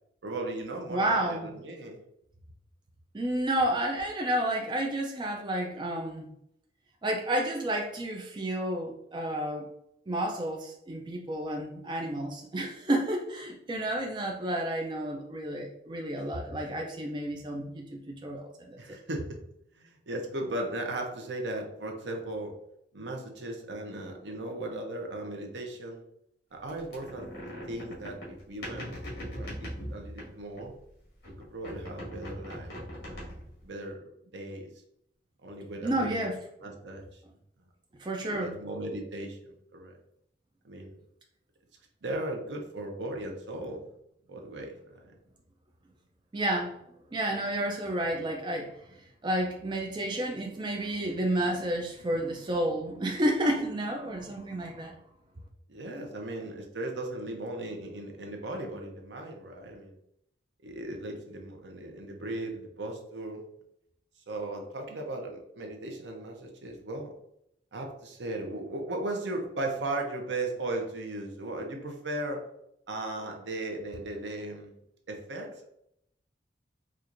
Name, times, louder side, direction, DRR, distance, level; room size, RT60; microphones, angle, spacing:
voice 1, 0.2-2.0 18.8-19.3 19.7-22.5 22.9-26.0 26.5-27.3 27.7-30.7 31.3-32.7 33.0-34.7 35.4-36.3 36.6-37.2 38.3-39.9 40.6-41.0 42.0-43.8 44.3-45.1 55.7-60.0 60.6-63.4 64.3-67.1 67.7-72.4 72.9-74.7 75.1-75.7, right 2 dB, 75° right, 2 dB, 0.7 m, -37 dB
voice 2, 0.9-1.5 3.1-6.3 7.0-9.7 10.1-18.8 35.8-36.4 38.0-38.6 46.3-46.7 47.1-48.7 49.2-54.9, right 1 dB, 25° right, 1 dB, 0.4 m, -31 dB
sound 1, 26.7-30.9 31.2-33.6, equal, 60° left, 1.4 m, -41 dB
4.3 x 2.4 x 2.5 m, 0.76 s
head